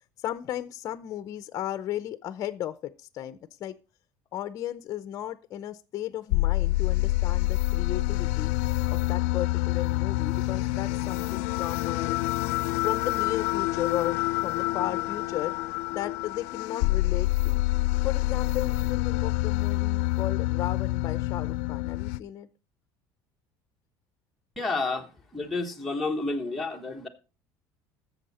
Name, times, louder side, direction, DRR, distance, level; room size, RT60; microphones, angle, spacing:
voice 1, 0.2-3.8 4.3-8.5 8.9-12.2 12.8-15.5 15.9-17.6 18.0-22.5, left 12 dB, 40° left, 12 dB, 0.6 m, -35 dB
sound 1, 6.3-22.2, left 19 dB, 90° left, 0.5 m, -27 dB
voice 2, 24.6-25.1 25.3-27.1, left 3 dB, ahead, -1 dB, 1.3 m, -30 dB
13.5 x 7.1 x 4.3 m, 0.33 s
cardioid pair, 140°, 8 cm